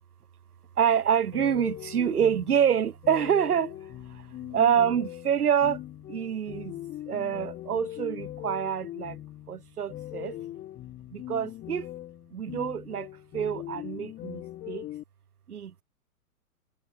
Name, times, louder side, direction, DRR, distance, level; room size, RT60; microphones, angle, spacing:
voice 1, 0.8-3.7 4.1-5.8 6.1-6.7 7.1-9.2 9.5-10.4 11.1-11.9 12.3-13.1 13.3-14.9 15.5-15.8, right 8 dB, 85° right, 0.7 m, -27 dB
sound 1, 1.3-15.0, left 14 dB, 20° left, 1.2 m, -41 dB
figure-of-eight pair, 115°, 44 cm